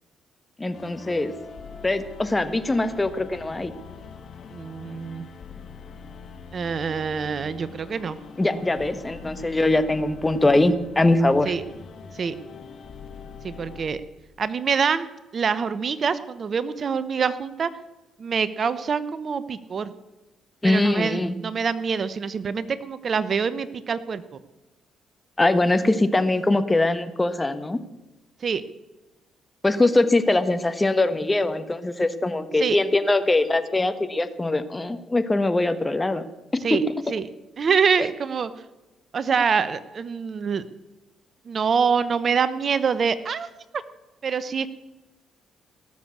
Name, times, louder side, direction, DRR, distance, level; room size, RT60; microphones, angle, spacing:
voice 1, 0.6-1.4 1.8-3.7 8.4-11.5 20.6-21.4 25.4-27.8 29.6-36.3 36.7-36.8 38.0-38.1, left 2 dB, 20° left, 11 dB, 1.4 m, -22 dB
sound 1, 0.7-13.9, left 5 dB, 55° left, 2.0 m, -43 dB
voice 2, 4.5-5.3 6.5-8.2 11.5-11.6 12.2-12.3 13.4-14.0 14.4-15.1 15.3-17.7 18.2-19.9 20.6-24.2 28.4-28.6 32.6-32.8 36.6-36.8 37.1-37.3 37.6-38.5 39.1-40.6 41.5-43.5 44.2-44.7, right 6 dB, 50° right, 15 dB, 0.9 m, -25 dB
19.0 x 7.2 x 8.3 m, 1.1 s
hypercardioid pair, 55°, 0 cm